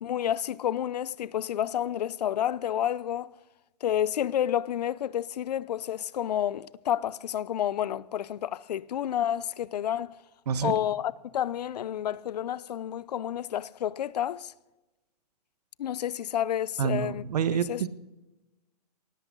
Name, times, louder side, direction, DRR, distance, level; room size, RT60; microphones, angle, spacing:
voice 1, 0.0-3.3 3.8-10.2 10.6-14.5 15.8-17.2 17.7-17.9, left 10 dB, 80° left, 0.6 m, -30 dB
voice 2, 10.5-10.8 16.8-17.9, right 7 dB, 75° right, 1.3 m, -28 dB
18.5 x 14.5 x 3.9 m
hypercardioid pair, 150°, 20 cm